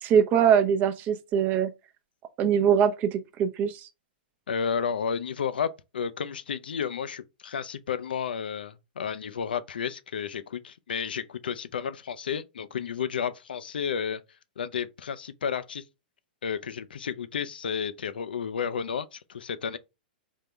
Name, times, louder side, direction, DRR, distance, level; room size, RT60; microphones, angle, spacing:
voice 1, 0.0-1.7 2.4-3.8, right 8 dB, 35° right, 0.6 m, -22 dB
voice 2, 4.5-14.2 14.6-15.8 16.4-19.8, left 7 dB, 75° left, 0.4 m, -32 dB
3.7 x 2.8 x 3.3 m
hypercardioid pair, 110°, 5 cm